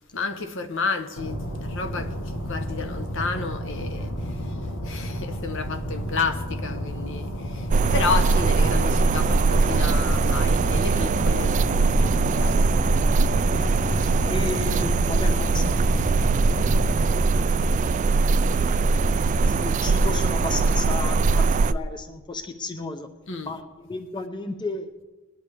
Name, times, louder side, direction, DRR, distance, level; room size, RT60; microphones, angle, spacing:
voice 1, 0.1-13.1 23.3-23.5, left 4 dB, 60° left, 1.0 m, -31 dB
sound 1, 1.2-17.2, equal, 80° left, 1.3 m, -32 dB
sound 2, 7.7-21.7, right 3 dB, 35° right, 0.3 m, -21 dB
voice 2, 13.5-16.7 18.4-18.8 19.5-23.1 23.5-25.0, left 3 dB, 20° left, 0.7 m, -34 dB
21.0 x 10.5 x 3.4 m
head